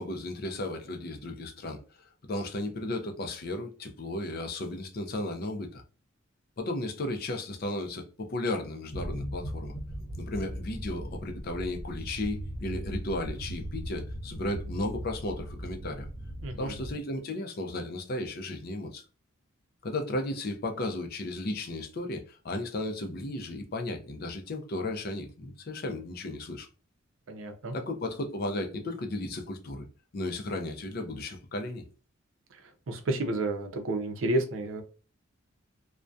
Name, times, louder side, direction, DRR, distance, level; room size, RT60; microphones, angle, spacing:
voice 1, 0.0-1.8 2.3-5.8 6.6-9.7 10.2-16.1 16.6-19.0 19.8-26.7 27.7-29.9 30.1-31.8, left 1 dB, 50° left, 0.5 m, -34 dB
sound 1, 8.9-16.9, equal, 80° left, 0.8 m, -38 dB
voice 2, 16.4-16.7 27.3-27.7 32.9-34.8, right 2 dB, 70° right, 0.5 m, -30 dB
2.3 x 2.1 x 2.5 m
head